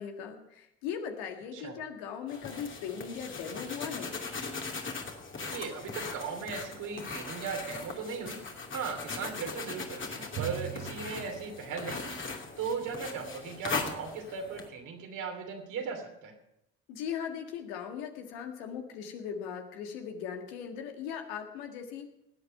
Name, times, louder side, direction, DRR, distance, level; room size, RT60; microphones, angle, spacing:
voice 1, 0.0-4.2 16.9-22.1, left 7 dB, 80° left, 4 dB, 1.9 m, -39 dB
sound 1, 2.3-14.7, left 4 dB, 35° left, 2.6 m, -39 dB
voice 2, 5.4-8.4 8.7-12.2 12.6-16.3, right 5 dB, 65° right, 3 dB, 3.0 m, -37 dB
Drum, 10.4-12.8, right 15 dB, 45° right, 0.5 m, -42 dB
19.5 x 8.3 x 5.6 m, 0.83 s
hypercardioid pair, 50°, 33 cm